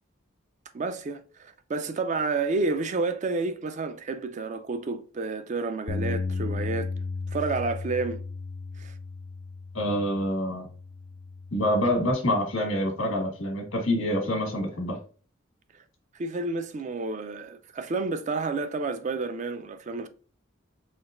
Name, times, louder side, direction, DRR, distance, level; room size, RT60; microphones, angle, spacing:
voice 1, 0.7-6.9 7.3-8.2 8.8-8.9 15.7-15.8 16.1-20.1, right 3 dB, 35° right, 0.4 m, -30 dB
Bass guitar, 5.9-12.1, left 4 dB, 40° left, 0.3 m, -35 dB
voice 2, 9.7-10.7 11.5-15.0, left 1 dB, 85° left, 1.5 m, -26 dB
4.4 x 3.1 x 2.5 m
head